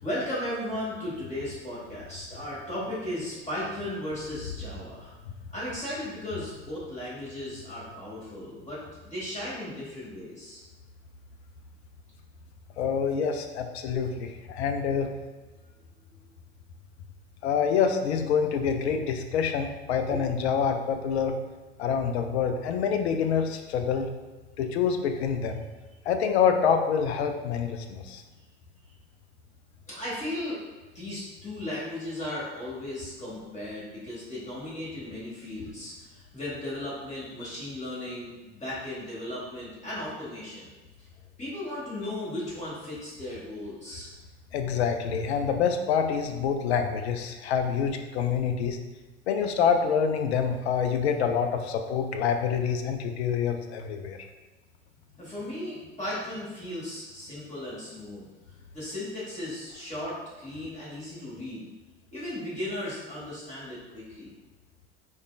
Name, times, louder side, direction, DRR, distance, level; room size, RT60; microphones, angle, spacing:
voice 1, 0.0-5.1 5.5-10.6 20.1-20.4 29.9-30.6 30.9-40.7 41.4-44.1 55.1-58.3 58.7-61.7 62.1-64.3, left 1 dB, 20° left, -8 dB, 1.4 m, -36 dB
voice 2, 12.8-15.1 17.4-21.3 21.8-24.1 24.6-25.6 26.1-28.2 44.5-48.8 49.3-54.2, left 7 dB, 80° left, 6 dB, 0.5 m, -26 dB
4.9 x 2.3 x 2.3 m, 1.2 s
hypercardioid pair, 80°, 32 cm